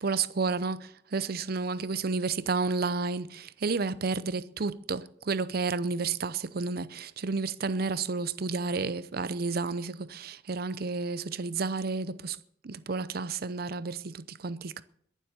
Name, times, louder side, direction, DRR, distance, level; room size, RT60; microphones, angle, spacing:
voice 1, 0.0-12.4 12.6-14.8, right 4 dB, 55° right, 0.7 m, -31 dB
21.5 x 7.4 x 6.7 m
head